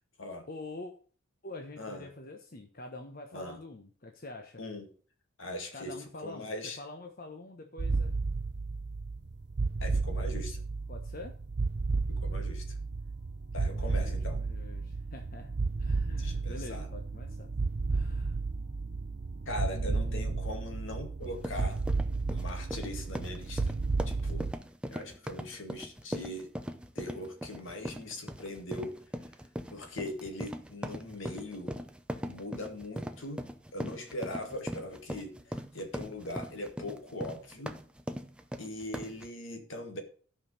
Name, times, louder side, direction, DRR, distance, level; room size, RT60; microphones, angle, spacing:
voice 1, 0.5-0.9 1.4-4.6 5.7-8.1 10.9-11.3 13.7-17.5 17.9-18.5 19.7-20.4, left 2 dB, 45° left, 1.1 m, -46 dB
voice 2, 5.4-5.9 6.2-6.8 9.8-10.6 12.1-12.6 13.5-14.4 16.2-16.9 19.5-21.8 22.3-23.8 24.1-24.5 24.9-26.5 26.9-28.9 29.7-31.8 32.2-37.8 38.6-40.0, left 1 dB, 65° left, 2.3 m, -40 dB
sound 1, 7.8-24.5, right 3 dB, 50° right, 0.6 m, -33 dB
sound 2, 21.2-39.3, equal, 5° right, 0.6 m, -40 dB
13.0 x 5.6 x 6.4 m
head